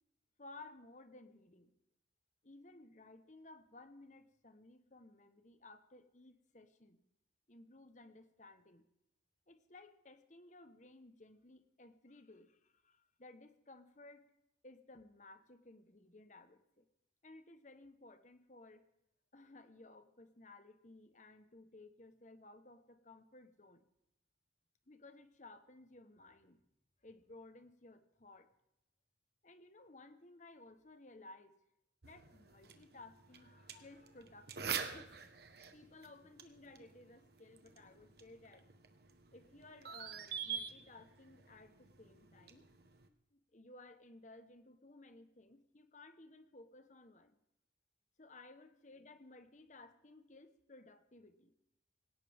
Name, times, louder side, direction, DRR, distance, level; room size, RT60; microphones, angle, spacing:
voice 1, 0.4-1.7 2.4-7.0 7.5-8.9 9.5-14.3 14.6-16.9 17.2-18.9 19.3-23.9 24.9-26.6 27.0-28.5 29.4-31.6 32.0-35.1 35.7-38.7 39.3-42.7 43.3-47.4 48.2-51.5, left 2 dB, 40° left, 10 dB, 1.3 m, -58 dB
sound 1, 32.0-43.1, right 7 dB, 55° right, 1.4 m, -47 dB
19.0 x 17.5 x 3.7 m, 0.83 s
head